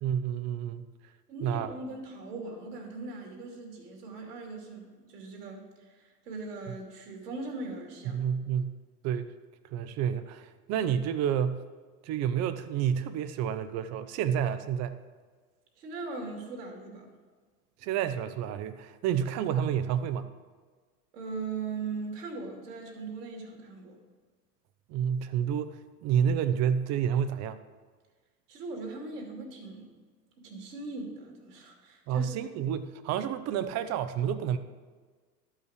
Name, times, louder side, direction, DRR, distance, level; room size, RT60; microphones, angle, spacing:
voice 1, 0.0-0.9 1.4-1.7 8.1-8.7 9.0-9.3 9.7-11.6 12.0-15.0 17.8-20.3 24.9-27.6 32.1-34.6, right 8 dB, 35° right, 11 dB, 0.6 m, -29 dB
voice 2, 1.3-8.2 15.8-17.1 21.1-24.0 28.5-30.0 30.4-32.5, right 3 dB, 70° right, 1 dB, 2.5 m, -40 dB
12.0 x 5.6 x 4.9 m, 1.5 s
hypercardioid pair, 100°, 48 cm